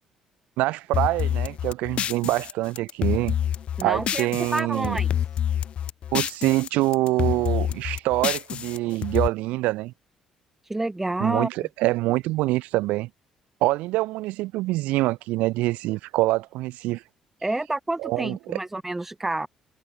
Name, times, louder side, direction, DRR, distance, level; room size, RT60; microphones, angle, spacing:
voice 1, 0.6-3.4 3.8-5.0 6.1-9.9 11.2-13.1 13.6-17.0 18.0-18.6, right 19 dB, 90° right, 1.1 m, -25 dB
sound 1, 0.9-4.6 4.8-6.7 6.9-9.3, left 9 dB, 55° left, 0.4 m, -27 dB
voice 2, 3.8-5.1 10.7-11.5 17.4-19.5, right 2 dB, 10° right, 2.7 m, -28 dB
cardioid pair, 100°, 2 cm